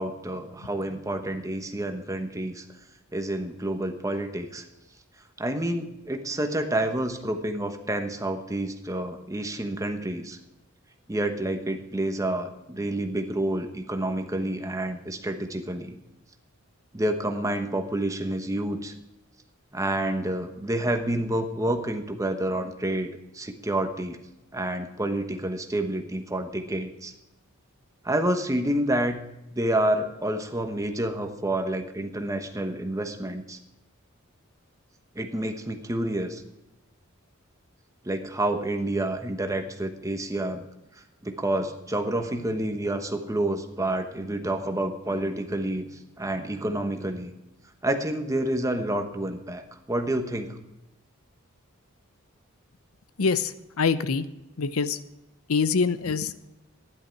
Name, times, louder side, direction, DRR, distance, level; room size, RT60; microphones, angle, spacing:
voice 1, 0.0-2.6 3.1-4.6 5.4-10.4 11.1-16.0 16.9-18.9 19.7-23.1 23.3-24.2 24.5-27.1 28.0-29.2 29.5-33.6 35.1-36.4 38.0-40.6 41.2-45.9 46.2-47.3 47.8-50.6, right 1 dB, 15° right, 6 dB, 1.1 m, -28 dB
voice 2, 53.2-53.5 53.8-54.2 54.6-55.0 55.5-56.4, left 5 dB, 90° left, 14 dB, 0.7 m, -24 dB
12.5 x 11.0 x 4.6 m, 0.93 s
head